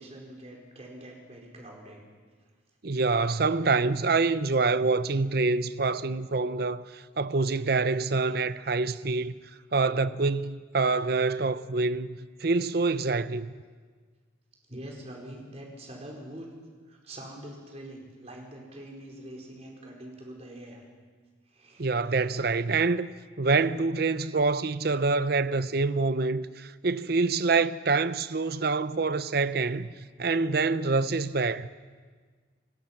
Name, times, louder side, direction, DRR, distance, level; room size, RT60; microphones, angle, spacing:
voice 1, 0.0-2.0 12.4-12.5 14.7-16.5 16.9-20.8 21.5-21.9, right 1 dB, 35° right, 4.6 m, -44 dB
voice 2, 2.8-9.3 9.7-13.5 21.8-23.1 23.4-29.9 30.2-31.7, right 3 dB, 55° right, 0.7 m, -26 dB
29.0 x 18.5 x 5.9 m
head